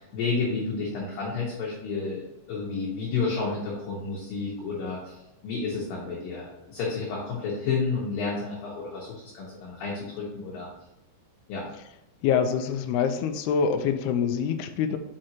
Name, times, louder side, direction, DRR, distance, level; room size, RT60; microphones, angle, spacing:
voice 1, 0.0-2.2 2.5-5.2 5.4-9.1 9.3-10.7 11.5-11.7, left 4 dB, 65° left, -4 dB, 2.6 m, -30 dB
voice 2, 12.2-15.0, left 7 dB, 90° left, 7 dB, 2.3 m, -25 dB
6.4 x 6.3 x 2.9 m, 0.92 s
omnidirectional pair, 5.2 m